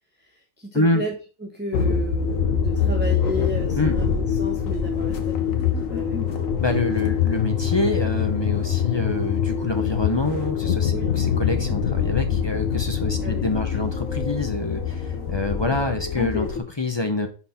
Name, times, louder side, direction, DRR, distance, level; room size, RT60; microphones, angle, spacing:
voice 1, 0.2-6.5 10.9-11.1 13.2-13.4, left 1 dB, 10° right, 0 dB, 0.9 m, -33 dB
sound 1, 1.7-16.6, left 7 dB, 80° left, 1.4 m, -24 dB
voice 2, 6.6-17.3, left 2 dB, 25° left, 6 dB, 0.6 m, -26 dB
5.5 x 4.3 x 5.6 m, 0.35 s
omnidirectional pair, 1.4 m